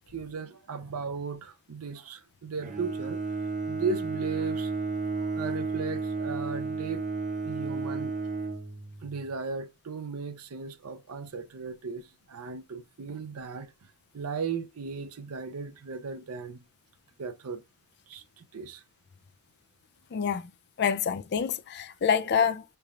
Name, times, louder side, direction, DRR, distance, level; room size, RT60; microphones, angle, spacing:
voice 1, 0.1-3.2 3.7-4.7 5.4-7.0 7.4-8.2 9.0-16.6 17.2-17.6 18.1-18.8, right 5 dB, 90° right, 0.6 m, -36 dB
Bowed string instrument, 2.6-9.3, right 3 dB, 35° right, 0.7 m, -32 dB
voice 2, 20.1-20.5 20.8-22.6, left 7 dB, 50° left, 0.4 m, -27 dB
5.5 x 3.3 x 2.4 m
head